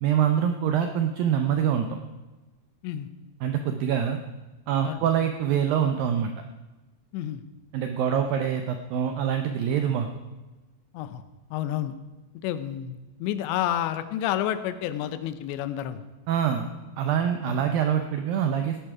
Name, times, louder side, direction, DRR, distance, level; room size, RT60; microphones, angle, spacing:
voice 1, 0.0-2.0 3.4-4.2 4.7-6.3 7.7-10.1 16.3-16.7 17.0-18.8, right 8 dB, 90° right, 6 dB, 2.0 m, -25 dB
voice 2, 11.5-12.0 12.4-16.1 17.4-17.6, left 11 dB, 80° left, 11 dB, 3.0 m, -30 dB
17.0 x 11.5 x 4.8 m, 1.2 s
omnidirectional pair, 5.2 m